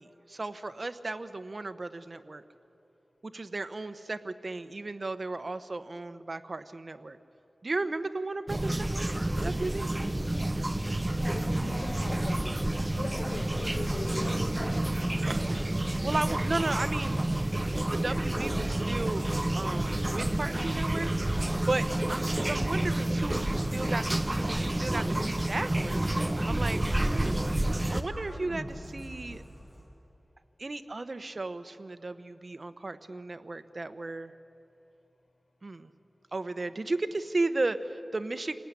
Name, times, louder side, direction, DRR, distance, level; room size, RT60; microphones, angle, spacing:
voice 1, 0.0-2.4 3.2-7.2 7.6-9.1 9.4-9.9 15.2-15.7 16.0-17.1 17.8-19.2 19.5-26.0 26.4-27.5 27.9-29.4 30.6-34.3 35.6-35.9 36.3-38.6, right 2 dB, 50° right, 10 dB, 1.1 m, -35 dB
sound 1, 8.5-28.0, right 1 dB, 20° right, 0.9 m, -29 dB
sound 2, 10.7-29.9, equal, 5° right, 5.6 m, -46 dB
voice 2, 11.1-12.5 12.9-15.1, left 2 dB, 80° left, 1 dB, 5.4 m, -40 dB
27.0 x 18.0 x 9.9 m, 2.8 s
wide cardioid pair, 65°, 0 cm